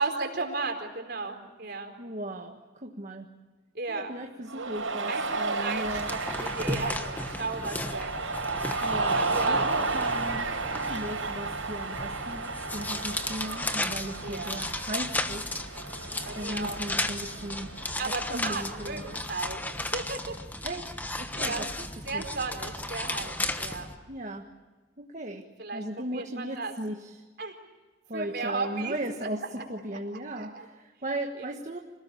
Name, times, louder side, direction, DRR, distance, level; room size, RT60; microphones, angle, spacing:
voice 1, 0.0-2.0 3.7-4.1 5.1-8.2 9.2-9.7 14.2-14.6 16.2-16.8 18.0-19.6 19.9-20.4 21.3-21.7 22.0-23.9 25.6-26.7 27.4-27.6 28.1-29.0 30.4-30.7 31.4-31.5, right 3 dB, 55° right, 4 dB, 4.3 m, -34 dB
voice 2, 2.0-3.3 3.9-6.1 8.8-15.5 16.3-17.8 18.0-19.1 20.6-21.9 22.1-22.2 24.1-24.5 25.0-27.2 28.1-31.8, right 1 dB, 40° right, 2 dB, 1.5 m, -37 dB
Cheering, 4.5-19.3, right 3 dB, 90° right, 5.9 m, -33 dB
sound 1, 5.8-24.0, left 1 dB, 10° left, 1.2 m, -35 dB
27.0 x 19.5 x 8.5 m, 1.3 s
head